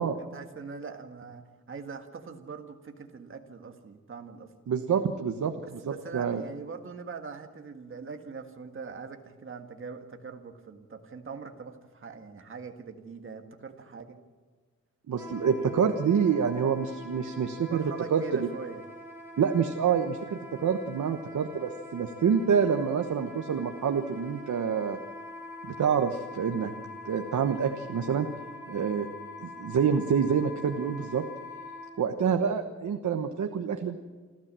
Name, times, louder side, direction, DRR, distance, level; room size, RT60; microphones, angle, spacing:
voice 1, 0.0-4.5 5.6-14.2 17.7-18.8, right 5 dB, 45° right, 5 dB, 1.8 m, -42 dB
voice 2, 4.7-5.8 6.1-6.4 15.1-17.8 18.1-18.5 19.4-25.0 25.6-26.7 27.0-28.3 28.7-29.1 29.4-31.2 32.0-34.0, right 7 dB, 80° right, 6 dB, 1.2 m, -27 dB
Wind instrument woodwind instrument, 15.2-31.9, left 2 dB, 5° right, 5.9 m, -44 dB
28.5 x 13.0 x 7.6 m, 1.5 s
wide cardioid pair, 160°, 29 cm